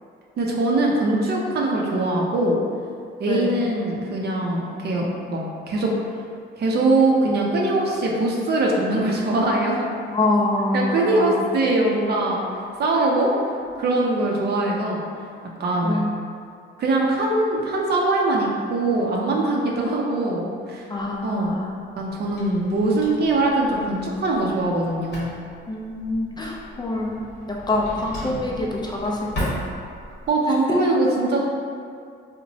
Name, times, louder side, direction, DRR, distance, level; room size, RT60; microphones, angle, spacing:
voice 1, 0.4-2.6 3.2-5.9 6.6-9.9 10.7-12.4 12.8-13.3 13.8-15.0 15.6-16.1 16.8-20.8 21.2-21.6 22.0-25.4 28.2-28.3 30.3-31.4, right 2 dB, 55° right, -2 dB, 0.5 m, -22 dB
voice 2, 3.2-3.6 10.1-11.5 14.1-14.6 15.8-16.1 20.9-21.7 25.7-27.2 27.7-29.6, left 2 dB, 20° left, -3 dB, 0.3 m, -26 dB
Drawer open or close, 21.0-30.3, equal, 60° left, 0.9 m, -37 dB
2.9 x 2.1 x 2.6 m, 2.3 s
cardioid pair, 90°, 20 cm